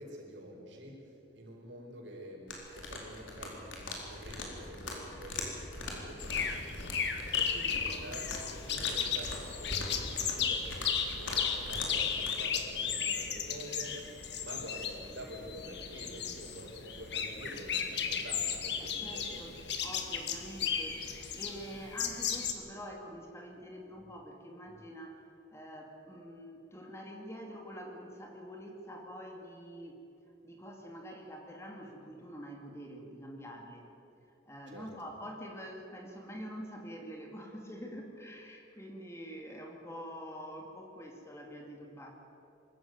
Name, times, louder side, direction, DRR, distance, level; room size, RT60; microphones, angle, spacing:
voice 1, 0.0-14.1 14.4-19.5 34.7-34.9, right 1 dB, 75° right, 0 dB, 4.9 m, -48 dB
sound 1, 2.5-12.4, left 2 dB, 90° left, 4.2 m, -42 dB
sound 2, 6.2-22.5, left 7 dB, 65° left, 1.8 m, -35 dB
voice 2, 18.8-30.0 30.4-33.9 34.5-42.1, equal, 15° left, 1 dB, 2.4 m, -46 dB
24.0 x 14.0 x 9.4 m, 2.8 s
head